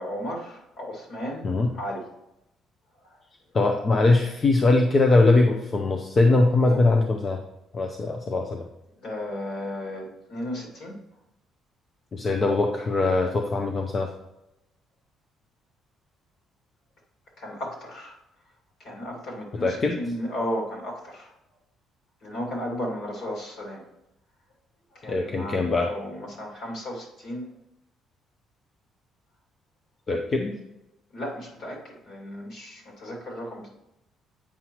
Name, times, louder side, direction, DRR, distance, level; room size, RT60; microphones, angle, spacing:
voice 1, 0.0-2.0 3.0-3.2 6.5-6.8 9.0-11.0 17.4-18.2 18.8-21.3 22.2-23.8 24.9-27.5 31.1-33.7, equal, 50° left, -3 dB, 2.4 m, -34 dB
voice 2, 3.5-7.4 7.7-8.7 12.1-14.1 19.6-20.0 25.1-25.9 30.1-30.6, left 2 dB, 25° left, 3 dB, 0.5 m, -21 dB
8.6 x 5.6 x 3.0 m, 0.88 s
cardioid pair, 165°, 0 cm